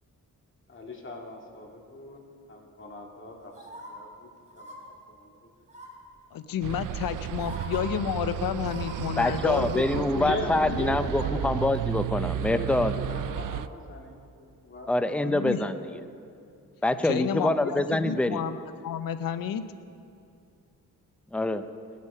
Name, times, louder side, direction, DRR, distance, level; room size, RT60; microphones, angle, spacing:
voice 1, 0.7-2.2 2.5-4.3 4.6-5.3 10.2-10.5 10.8-11.5 12.5-14.2 14.6-14.9 15.2-15.4, left 2 dB, 35° left, 1 dB, 2.0 m, -39 dB
sound 1, 3.5-3.9 4.5-4.8 5.7-6.1 6.9-7.0 7.4-7.8 8.6-9.8 10.2-10.3, right 1 dB, 20° right, 3.7 m, -43 dB
voice 2, 6.3-10.8 15.2-15.6 17.0-19.6, left 9 dB, 80° left, 12 dB, 0.6 m, -31 dB
sound 2, 6.6-13.7, right 11 dB, 65° right, 0.4 m, -33 dB
voice 3, 9.2-12.9 14.9-15.8 16.8-18.4 21.3-21.6, left 1 dB, 5° left, 10 dB, 0.5 m, -25 dB
18.5 x 8.3 x 5.5 m, 2.5 s
cardioid pair, 85°, 34 cm